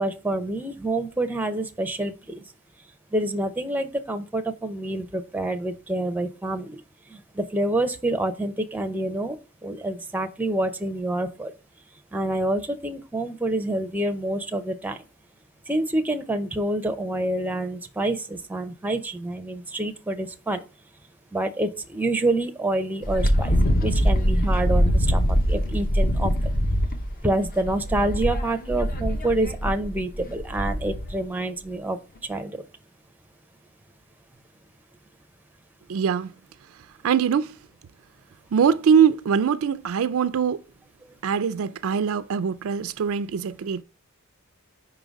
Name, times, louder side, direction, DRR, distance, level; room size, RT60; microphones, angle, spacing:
voice 1, 0.0-2.2 3.1-6.8 7.1-9.4 9.6-11.5 12.1-15.0 15.7-20.6 21.3-26.3 27.2-32.0 32.2-32.6, right 1 dB, 10° right, 0.5 m, -27 dB
Wind, 23.0-31.2, equal, 40° left, 0.8 m, -23 dB
voice 2, 35.9-36.3 37.0-37.5 38.5-40.6 41.2-43.8, right 7 dB, 65° right, 0.4 m, -22 dB
5.4 x 3.8 x 5.1 m
head